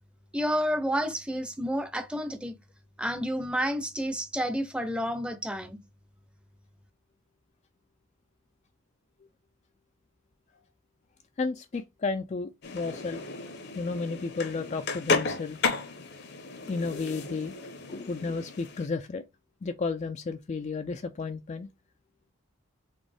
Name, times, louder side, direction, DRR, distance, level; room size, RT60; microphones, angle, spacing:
voice 1, 0.3-2.5 3.0-5.8, equal, 5° right, 0.6 m, -30 dB
voice 2, 11.4-13.2 13.7-15.6 16.7-17.5 17.9-19.2 19.6-21.7, left 4 dB, 30° left, 0.3 m, -32 dB
sound 1, 12.6-18.9, left 3 dB, 50° left, 0.7 m, -33 dB
4.2 x 3.4 x 3.3 m
head